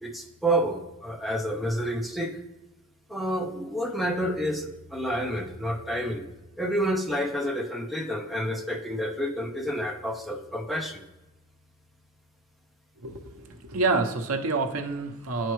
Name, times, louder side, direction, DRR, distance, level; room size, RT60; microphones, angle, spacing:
voice 1, 0.0-2.4 3.1-6.3 6.6-11.0, equal, ahead, 2 dB, 0.6 m, -29 dB
voice 2, 13.0-15.5, right 3 dB, 75° right, 5 dB, 0.8 m, -28 dB
10.0 x 4.5 x 3.1 m, 1.0 s
head